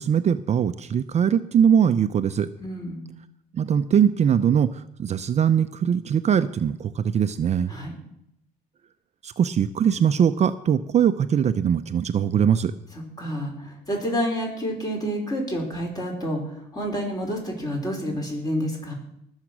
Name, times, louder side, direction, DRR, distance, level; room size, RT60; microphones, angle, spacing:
voice 1, 0.0-2.5 3.5-7.8 9.2-12.7, right 8 dB, 40° right, 10 dB, 0.6 m, -21 dB
voice 2, 2.6-3.1 7.7-7.9 13.2-18.9, equal, 20° left, 0 dB, 5.1 m, -29 dB
20.0 x 7.4 x 6.1 m, 0.76 s
cardioid pair, 110°, 17 cm